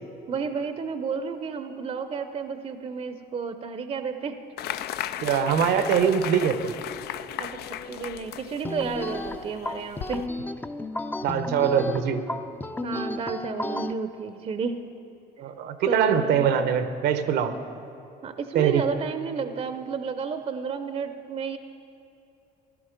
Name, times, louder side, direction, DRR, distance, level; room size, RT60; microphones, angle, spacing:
voice 1, 0.3-4.4 7.4-7.6 7.8-10.2 12.8-14.8 15.9-16.4 18.2-21.6, right 5 dB, 35° right, 9 dB, 0.7 m, -31 dB
sound 1, 4.6-10.3, left 11 dB, 70° left, 0.5 m, -36 dB
voice 2, 5.2-6.7 11.2-12.2 15.4-17.6 18.5-18.8, right 8 dB, 80° right, 10 dB, 1.0 m, -23 dB
sound 2, 8.6-13.9, left 2 dB, 10° left, 0.5 m, -33 dB
16.0 x 12.0 x 5.2 m, 2.8 s
cardioid pair, 110°, 17 cm